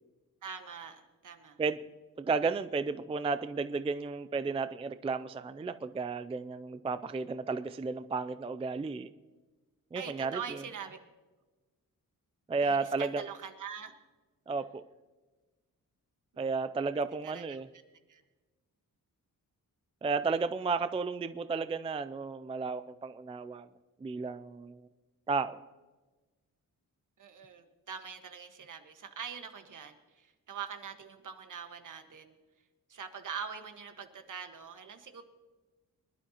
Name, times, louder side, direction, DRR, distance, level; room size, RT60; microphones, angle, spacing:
voice 1, 0.4-1.6 9.9-11.0 12.6-13.9 17.2-17.6 18.1-18.2 27.2-32.3 32.9-35.2, right 7 dB, 65° right, 6 dB, 1.4 m, -43 dB
voice 2, 2.2-9.1 9.9-10.4 12.5-13.2 14.5-14.8 16.4-17.7 20.0-23.7 24.0-24.9 25.3-25.6, right 4 dB, 20° right, 12 dB, 0.3 m, -33 dB
24.0 x 11.5 x 2.9 m, 1.2 s
wide cardioid pair, 160°, 34 cm